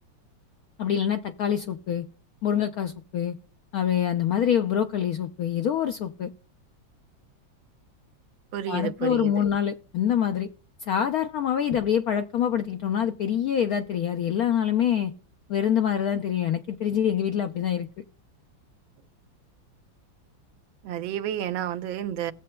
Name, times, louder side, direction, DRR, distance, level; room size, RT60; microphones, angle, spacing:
voice 1, 0.8-2.1 2.4-3.4 3.7-6.3 8.7-10.5 10.8-15.1 15.5-17.9, left 9 dB, 80° left, 0.8 m, -25 dB
voice 2, 8.5-9.3 20.8-22.3, right 11 dB, 85° right, 1.4 m, -30 dB
18.5 x 7.5 x 2.2 m
omnidirectional pair, 2.1 m